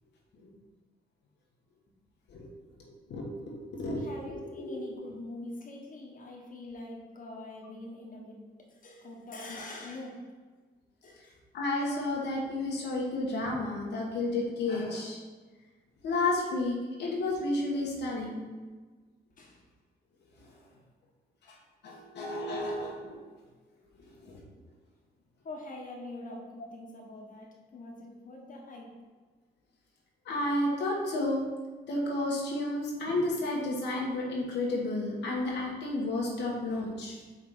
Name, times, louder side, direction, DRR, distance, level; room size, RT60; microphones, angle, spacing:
voice 1, 3.1-4.0 4.6-5.0 11.5-15.2 16.0-18.4 21.8-23.2 24.2-24.4 30.2-31.4 31.9-37.2, left 2 dB, 90° left, -3 dB, 1.3 m, -31 dB
voice 2, 3.8-8.4 8.7-10.3 11.0-11.4 19.4-19.6 21.9-22.0 25.4-28.9, left 2 dB, 50° left, -2 dB, 1.3 m, -44 dB
5.1 x 3.6 x 5.6 m, 1.3 s
cardioid pair, 80°, 18 cm